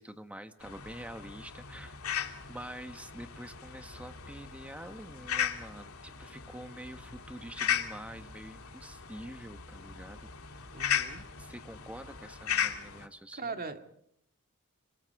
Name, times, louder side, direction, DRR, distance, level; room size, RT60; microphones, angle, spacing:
voice 1, 0.0-2.0 2.5-11.0 11.4-13.6, right 1 dB, 5° right, 8 dB, 1.4 m, -46 dB
sound 1, 0.6-13.0, left 8 dB, 85° left, 2.5 m, -37 dB
voice 2, 10.7-11.3 13.4-13.9, right 4 dB, 45° right, 6 dB, 2.3 m, -39 dB
26.0 x 25.5 x 4.9 m, 0.75 s
head